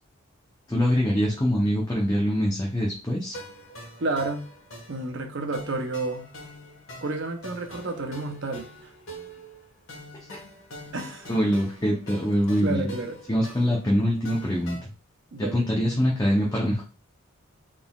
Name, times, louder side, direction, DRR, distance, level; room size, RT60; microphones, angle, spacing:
voice 1, 0.7-3.4 10.3-10.4 11.3-12.9 13.3-14.8 15.4-16.8, equal, 15° left, -3 dB, 0.6 m, -24 dB
sound 1, 3.3-14.8, equal, 65° left, 1.4 m, -44 dB
voice 2, 4.0-4.4 4.9-6.3 7.0-8.9 10.9-11.4 12.1-12.3 12.6-13.1 15.3-15.6, right 2 dB, 60° right, 5 dB, 0.7 m, -31 dB
4.0 x 3.6 x 2.3 m, 0.35 s
head